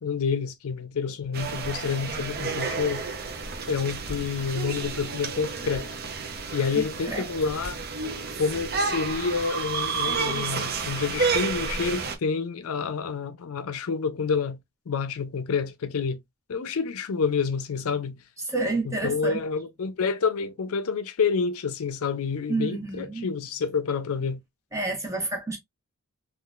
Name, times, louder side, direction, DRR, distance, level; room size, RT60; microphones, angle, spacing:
voice 1, 0.0-3.1 3.7-5.9 6.5-7.8 8.4-14.6 14.9-16.2 16.5-18.2 18.8-24.4, left 5 dB, 75° left, 0.5 m, -28 dB
sound 1, 1.3-12.2, right 4 dB, 45° right, 0.6 m, -31 dB
voice 2, 6.7-7.3 18.5-19.4 22.5-23.3 24.7-25.6, right 3 dB, 15° right, 1.0 m, -29 dB
3.7 x 2.4 x 2.3 m
head